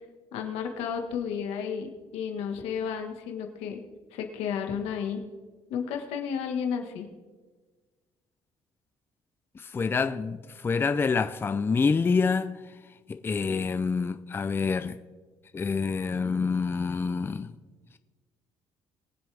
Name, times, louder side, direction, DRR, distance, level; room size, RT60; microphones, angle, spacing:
voice 1, 0.3-3.8 4.1-5.2 5.7-7.1, left 7 dB, 90° left, 1.7 m, -32 dB
voice 2, 9.6-12.5 13.1-15.0 15.5-17.6, left 5 dB, 20° left, 0.5 m, -27 dB
22.0 x 7.6 x 3.5 m
cardioid pair, 120°, 10 cm